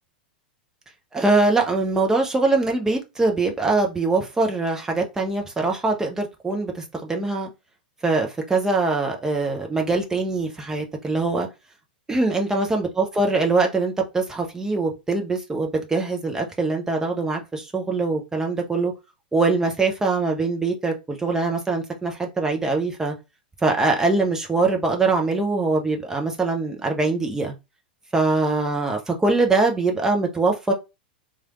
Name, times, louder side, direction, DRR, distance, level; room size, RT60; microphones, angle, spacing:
voice 1, 1.1-7.5 8.0-11.5 12.1-18.9 19.3-23.1 23.6-27.5 28.1-30.7, right 3 dB, 10° right, 0.8 m, -23 dB
3.2 x 2.4 x 3.0 m
figure-of-eight pair, 95°, 5 cm